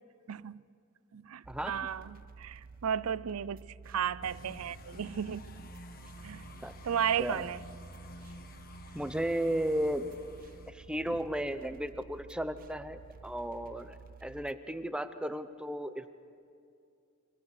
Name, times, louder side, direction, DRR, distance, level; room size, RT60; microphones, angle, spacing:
voice 1, 0.3-0.6 1.1-5.7 6.2-6.5 6.8-7.6, right 8 dB, 90° right, 0.5 m, -34 dB
sound 1, 1.4-14.5, right 4 dB, 40° right, 0.6 m, -52 dB
voice 2, 1.5-1.9 6.6-6.7 7.2-7.4 8.9-10.1 10.7-16.1, right 1 dB, 5° right, 0.8 m, -34 dB
sound 2, 4.2-10.7, left 1 dB, 45° left, 1.4 m, -50 dB
28.0 x 24.5 x 6.6 m
head